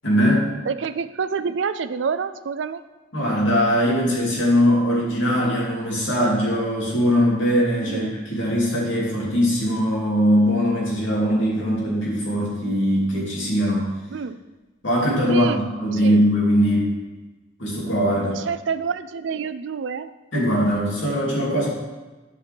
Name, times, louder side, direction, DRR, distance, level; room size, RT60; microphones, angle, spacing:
voice 1, 0.0-0.5 3.1-13.9 14.8-16.9 17.6-18.4 20.3-21.7, equal, 80° left, -4 dB, 2.6 m, -21 dB
voice 2, 0.7-2.8 7.9-8.1 14.1-14.4 15.3-15.6 15.9-16.2 18.4-20.1, right 6 dB, 70° right, 13 dB, 0.4 m, -27 dB
11.5 x 5.6 x 3.5 m, 1.2 s
head